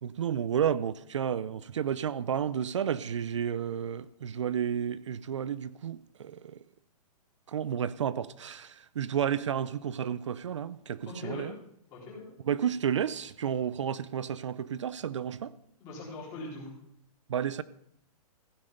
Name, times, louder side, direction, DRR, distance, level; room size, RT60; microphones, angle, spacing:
voice 1, 0.0-6.6 7.5-11.5 12.5-15.5 17.3-17.6, right 8 dB, 50° right, 0.4 m, -31 dB
voice 2, 11.1-11.5 11.9-12.3 15.8-16.7, left 2 dB, 15° left, 3.6 m, -40 dB
15.5 x 7.6 x 5.2 m
hypercardioid pair, 180°, 20 cm